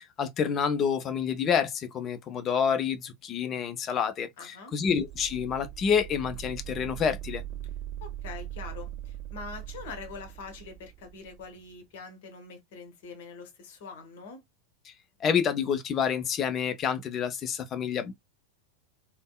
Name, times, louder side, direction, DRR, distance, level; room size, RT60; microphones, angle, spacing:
voice 1, 0.0-7.4 14.9-15.0 15.2-18.1, left 7 dB, 30° left, 0.5 m, -28 dB
voice 2, 4.4-4.7 8.0-14.4, left 5 dB, 50° left, 0.9 m, -44 dB
sound 1, 4.8-11.5, right 12 dB, 30° right, 0.4 m, -41 dB
3.5 x 2.0 x 2.2 m
figure-of-eight pair, 90°, 0 cm